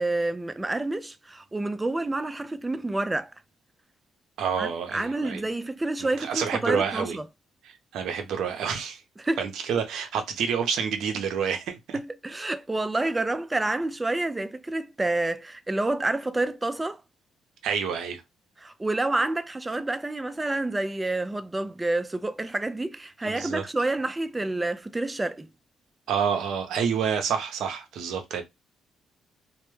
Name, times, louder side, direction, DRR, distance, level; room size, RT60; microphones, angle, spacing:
voice 1, 0.0-3.3 4.6-7.2 9.2-9.4 11.9-17.0 18.6-25.5, right 2 dB, 15° right, 0.3 m, -28 dB
voice 2, 4.4-5.4 6.0-7.2 7.9-9.0 9.4-12.0 17.6-18.2 23.2-23.6 26.1-28.4, right 7 dB, 80° right, 0.6 m, -28 dB
2.1 x 2.1 x 3.0 m
cardioid pair, 90°, 0 cm